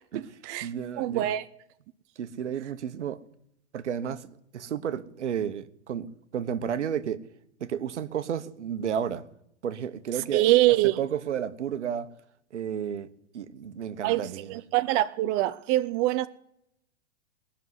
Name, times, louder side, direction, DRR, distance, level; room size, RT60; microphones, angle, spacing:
voice 1, 0.1-1.3 2.2-3.2 3.7-7.2 7.6-9.2 9.6-12.1 12.5-13.1 13.3-14.6, right 8 dB, 80° right, 1.2 m, -32 dB
voice 2, 1.0-1.4 10.3-11.0 14.0-16.3, right 16 dB, 35° right, 0.7 m, -24 dB
19.0 x 6.7 x 9.6 m
hypercardioid pair, 120°, 35 cm